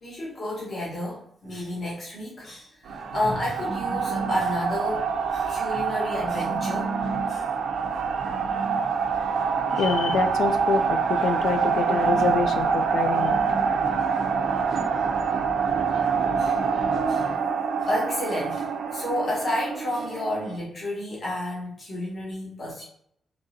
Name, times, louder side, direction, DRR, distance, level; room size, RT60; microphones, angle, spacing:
voice 1, 0.0-5.0 5.3-6.9 7.3-7.4 16.4-16.6 17.1-17.3 17.8-22.8, left 1 dB, 40° left, 1.3 m, -31 dB
sound 1, 2.9-20.6, right 5 dB, 80° right, 0.4 m, -26 dB
voice 2, 9.7-13.4, left 5 dB, 80° left, 0.3 m, -27 dB
3.8 x 2.8 x 2.7 m
wide cardioid pair, 140°, 0 cm